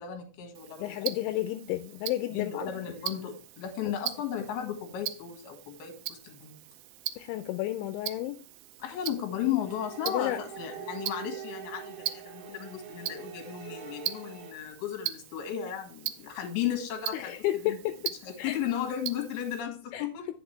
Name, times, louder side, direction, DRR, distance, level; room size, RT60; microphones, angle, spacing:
voice 1, 0.0-0.9 2.3-6.6 8.8-17.4 17.6-17.8 18.2-20.3, left 10 dB, 65° left, 3.3 m, -35 dB
Tick-tock, 0.6-19.6, right 15 dB, 85° right, 3.0 m, -41 dB
voice 2, 0.8-2.7 7.2-8.4 10.1-10.4 17.1-17.9 18.4-18.6 19.9-20.1, left 14 dB, 85° left, 2.9 m, -31 dB
sound 1, 9.6-14.5, right 9 dB, 55° right, 3.3 m, -43 dB
10.0 x 7.1 x 3.3 m
omnidirectional pair, 5.4 m